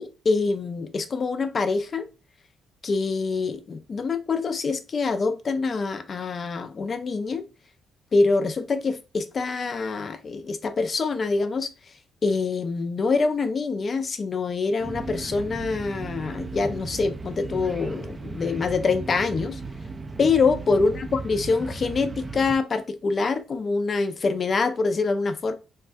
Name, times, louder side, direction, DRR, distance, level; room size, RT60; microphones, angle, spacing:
voice 1, 0.0-2.0 2.8-7.5 8.1-11.7 12.2-19.6 20.2-25.5, left 4 dB, 40° left, 0.5 m, -25 dB
sound 1, 14.8-22.6, right 3 dB, 25° right, 0.3 m, -36 dB
3.2 x 2.2 x 2.6 m
cardioid pair, 90°, 0 cm